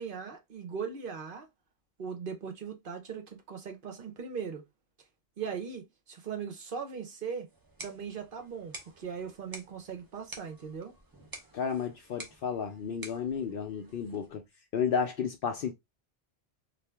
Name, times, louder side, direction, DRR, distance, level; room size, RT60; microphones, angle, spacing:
voice 1, 0.0-1.5 2.0-4.6 5.4-7.5 7.8-10.9, right 6 dB, 60° right, 1.0 m, -39 dB
sound 1, 7.5-14.4, right 2 dB, 25° right, 0.7 m, -50 dB
voice 2, 11.5-14.4 14.7-15.7, left 6 dB, 65° left, 0.7 m, -32 dB
2.8 x 2.4 x 3.3 m
omnidirectional pair, 1.0 m